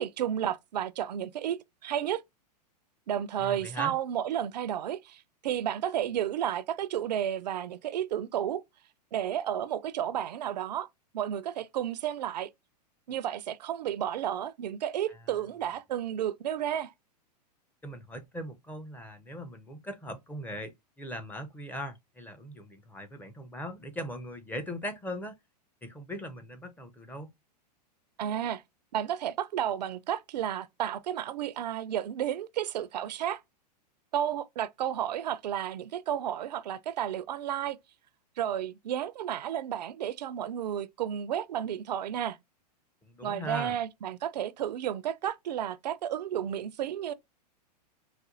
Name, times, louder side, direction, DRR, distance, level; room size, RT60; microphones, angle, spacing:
voice 1, 0.0-2.2 3.1-8.6 9.1-10.9 11.1-12.5 13.1-16.9 28.2-28.6 28.9-33.4 34.1-37.8 38.4-42.4 43.2-47.1, right 10 dB, 75° right, 0.4 m, -32 dB
voice 2, 3.4-3.9 15.1-15.2 17.8-25.4 25.8-27.3 43.0-43.8, equal, 10° left, 0.5 m, -40 dB
4.1 x 2.2 x 2.4 m
hypercardioid pair, 105°, 21 cm